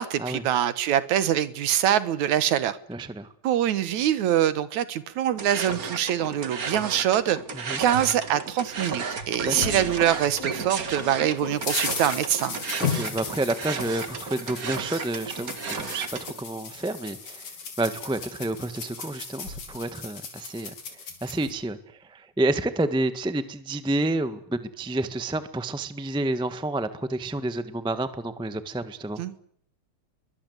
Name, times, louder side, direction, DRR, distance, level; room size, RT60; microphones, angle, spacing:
voice 1, 0.0-2.8 3.4-7.4 7.8-12.6 29.2-29.3, right 11 dB, 75° right, 2.7 m, -24 dB
voice 2, 2.9-3.3 7.5-7.8 9.4-9.9 12.9-29.2, right 2 dB, 5° right, 0.4 m, -30 dB
sound 1, 5.4-16.3, right 5 dB, 35° right, 1.7 m, -34 dB
mysounds-Yael-bouteille gros sel, 8.8-10.6 11.0-21.5, left 5 dB, 70° left, 4.9 m, -36 dB
26.5 x 23.0 x 8.1 m
omnidirectional pair, 3.4 m